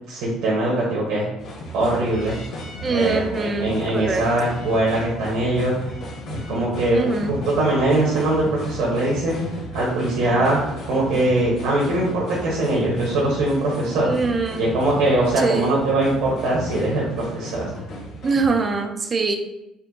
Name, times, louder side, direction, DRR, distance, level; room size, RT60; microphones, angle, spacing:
voice 1, 0.1-1.3 1.7-2.4 2.9-5.7 6.3-7.0 7.2-9.4 9.7-10.6 10.9-14.1 14.6-17.6, right 2 dB, 75° right, -6 dB, 1.3 m, -21 dB
sound 1, 1.4-18.5, equal, 45° left, 1.3 m, -34 dB
voice 2, 2.8-4.6 6.9-7.4 14.0-14.6 15.4-15.8 18.2-19.4, right 4 dB, 20° right, 5 dB, 0.4 m, -23 dB
4.3 x 2.8 x 4.1 m, 0.89 s
cardioid pair, 170°, 0 cm